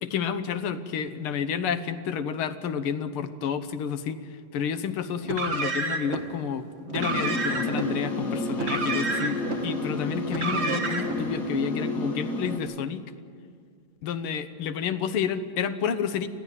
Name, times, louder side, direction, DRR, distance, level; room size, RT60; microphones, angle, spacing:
voice 1, 0.0-4.2 4.5-13.1 14.0-16.3, left 7 dB, 85° left, 11 dB, 1.8 m, -30 dB
Car, 5.2-6.2 6.9-7.9 8.5-9.6 10.3-11.2, right 3 dB, 35° right, 1.6 m, -29 dB
sound 1, 7.0-12.6, left 2 dB, 50° left, 2.8 m, -30 dB
21.0 x 14.5 x 9.3 m, 2.1 s
omnidirectional pair, 2.3 m